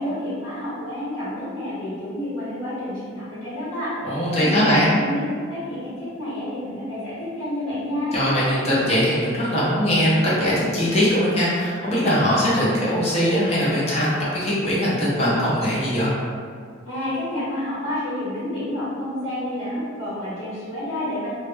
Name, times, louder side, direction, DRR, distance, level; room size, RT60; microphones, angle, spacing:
voice 1, 0.0-5.2 5.5-8.2 16.8-21.3, left 1 dB, 90° left, -10 dB, 1.0 m, -29 dB
voice 2, 4.0-4.9 8.1-16.1, equal, 30° left, -8 dB, 0.6 m, -21 dB
2.1 x 2.0 x 3.1 m, 2.1 s
head